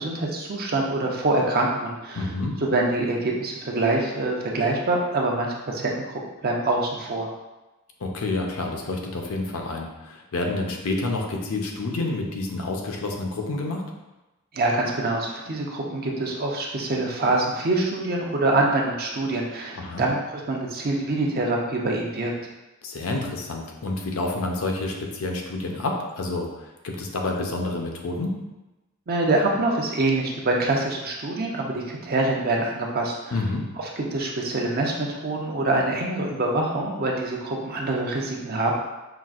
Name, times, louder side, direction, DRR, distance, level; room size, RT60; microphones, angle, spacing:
voice 1, 0.0-2.3 2.6-7.3 14.5-22.3 29.1-33.3 34.0-38.7, right 2 dB, 45° right, -1 dB, 0.6 m, -25 dB
voice 2, 2.1-2.6 8.0-13.9 19.8-20.1 22.8-28.4 33.3-33.6, left 2 dB, 75° left, 1 dB, 0.6 m, -29 dB
5.8 x 2.5 x 2.4 m, 1.1 s
head